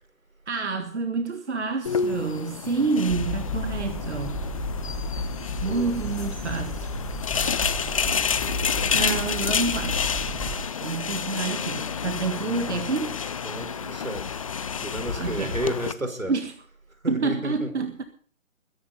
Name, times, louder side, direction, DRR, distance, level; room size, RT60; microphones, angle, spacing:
voice 1, 0.5-4.6 5.6-6.9 8.9-10.0 10.8-13.2 15.2-15.5 16.3-16.5 17.1-18.0, right 4 dB, 60° right, 1.8 m, -28 dB
sound 1, 1.9-15.9, left 6 dB, 25° left, 0.8 m, -29 dB
sound 2, 3.1-10.5, left 1 dB, ahead, 3.7 m, -33 dB
voice 2, 5.6-6.0 13.4-14.3 14.8-16.3 17.0-17.7, right 1 dB, 85° right, 5.1 m, -32 dB
22.0 x 10.5 x 5.5 m
figure-of-eight pair, 145°, 40 cm